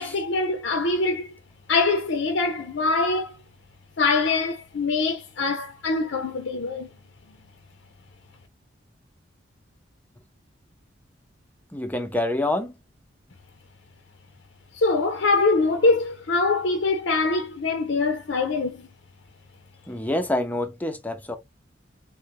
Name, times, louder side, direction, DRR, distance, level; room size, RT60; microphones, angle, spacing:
voice 1, 0.0-1.3 1.7-3.3 4.0-6.9 14.7-18.9, left 3 dB, 70° left, 0.6 m, -23 dB
voice 2, 11.7-12.7 19.9-21.3, left 1 dB, 10° left, 0.5 m, -27 dB
3.8 x 2.1 x 2.8 m
head